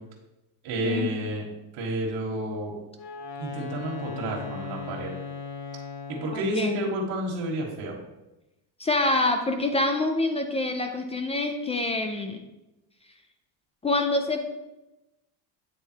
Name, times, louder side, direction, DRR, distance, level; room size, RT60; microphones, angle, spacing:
voice 1, 0.6-1.5 1.7-2.8 3.4-5.1 6.1-8.0, right 1 dB, 65° right, -2 dB, 1.6 m, -30 dB
Wind instrument woodwind instrument, 2.9-6.6, left 5 dB, 90° left, 1.5 m, -37 dB
voice 2, 6.3-6.8 8.8-12.4 13.8-14.5, left 2 dB, 15° left, 5 dB, 0.3 m, -26 dB
8.6 x 3.4 x 4.5 m, 0.98 s
cardioid pair, 135°, 46 cm